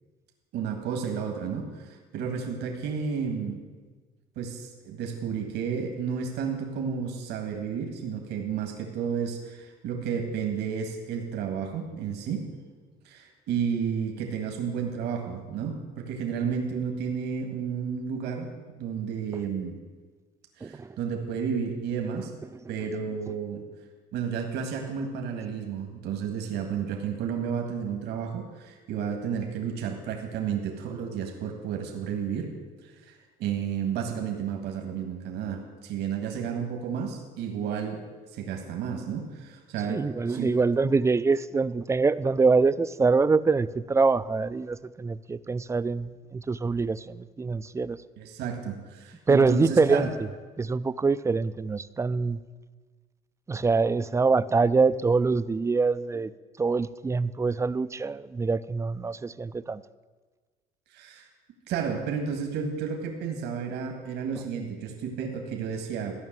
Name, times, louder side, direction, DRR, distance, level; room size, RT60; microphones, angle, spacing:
voice 1, 0.5-3.6 4.3-12.4 13.0-18.5 18.8-19.7 20.6-22.3 22.7-23.6 24.1-32.5 32.8-38.0 38.3-40.0 40.3-40.5 40.8-40.9 48.2-50.1 60.9-61.3 61.7-66.2, right 7 dB, 85° right, 3 dB, 1.8 m, -32 dB
voice 2, 20.6-21.0 39.9-48.0 49.3-50.1 50.6-52.4 53.5-56.3 56.6-59.8, right 4 dB, 15° right, 15 dB, 0.4 m, -24 dB
14.5 x 5.9 x 9.0 m, 1.4 s
cardioid pair, 110°, 17 cm